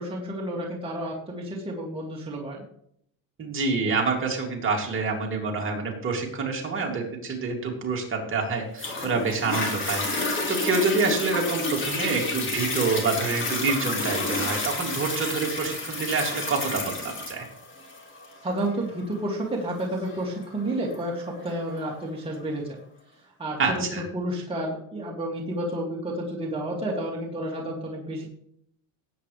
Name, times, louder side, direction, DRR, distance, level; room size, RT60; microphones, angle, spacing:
voice 1, 0.0-2.6 18.4-22.8 23.4-28.3, right 1 dB, 15° right, -3 dB, 2.4 m, -31 dB
voice 2, 3.4-17.4 23.6-24.0, right 4 dB, 30° right, 0 dB, 2.7 m, -27 dB
Toilet flush, 8.8-21.8 22.4-22.5, left 2 dB, 30° left, 2.8 m, -30 dB
18.0 x 8.3 x 3.3 m, 0.68 s
cardioid pair, 145°, 41 cm